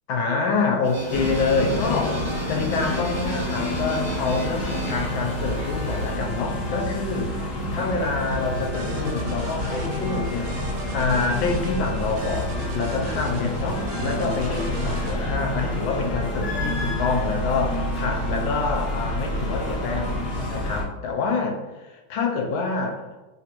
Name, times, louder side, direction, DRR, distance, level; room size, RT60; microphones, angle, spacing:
voice 1, 0.1-10.7 10.9-20.1 20.5-23.0, left 4 dB, 80° left, 1 dB, 1.3 m, -27 dB
sound 1, 0.8-6.1, right 2 dB, 55° right, 0.7 m, -35 dB
sound 2, 1.1-20.8, left 1 dB, 60° left, 0.6 m, -28 dB
sound 3, 8.3-15.2, right 3 dB, 85° right, 1.4 m, -36 dB
3.5 x 2.9 x 2.5 m, 1.1 s
omnidirectional pair, 2.2 m